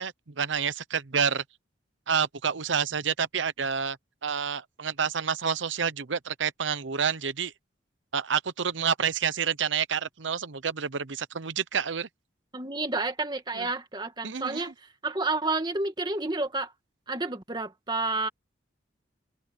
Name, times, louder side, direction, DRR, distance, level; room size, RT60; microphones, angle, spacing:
voice 1, 0.0-1.4 2.1-7.5 8.1-12.1 13.5-13.7 14.2-14.7, right 7 dB, 85° right, 0.8 m, -29 dB
voice 2, 12.5-14.7 15.0-16.7 17.1-18.3, right 3 dB, 25° right, 1.9 m, -30 dB
head